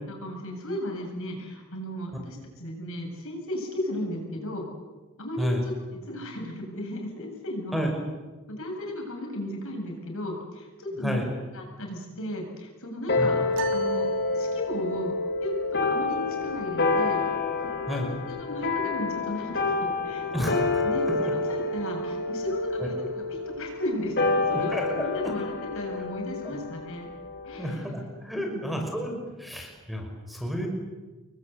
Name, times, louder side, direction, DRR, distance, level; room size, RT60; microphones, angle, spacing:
voice 1, 0.1-4.6 5.2-7.9 8.5-11.2 11.5-13.4 13.7-17.2 17.6-18.0 18.3-20.6 20.8-27.1 27.4-28.1 28.4-29.3, left 1 dB, 65° left, 2 dB, 7.6 m, -35 dB
sound 1, 13.1-27.8, left 3 dB, 50° left, 4.0 m, -28 dB
sound 2, 13.5-15.0, right 3 dB, 60° right, 1.5 m, -39 dB
voice 2, 27.5-30.7, equal, ahead, 1 dB, 5.6 m, -31 dB
29.0 x 22.0 x 8.3 m, 1.2 s
head